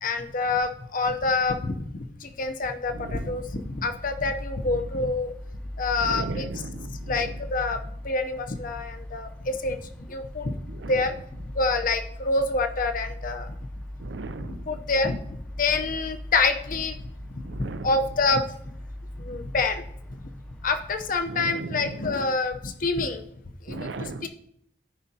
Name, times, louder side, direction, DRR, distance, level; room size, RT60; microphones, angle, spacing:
voice 1, 0.0-5.3 5.8-6.5 6.9-7.8 8.0-10.6 10.9-11.2 11.5-13.5 14.4-17.0 17.3-18.4 19.2-19.8 20.6-23.2 23.7-24.3, left 3 dB, 50° left, 7 dB, 0.7 m, -27 dB
sound 1, 2.8-21.4, left 1 dB, 5° left, 0.7 m, -40 dB
voice 2, 2.9-3.4 6.0-7.4 10.7-11.0 14.0-14.8 17.4-17.9 21.3-22.1 23.7-24.3, right 3 dB, 80° right, 13 dB, 0.5 m, -37 dB
14.0 x 5.0 x 2.8 m, 0.70 s
head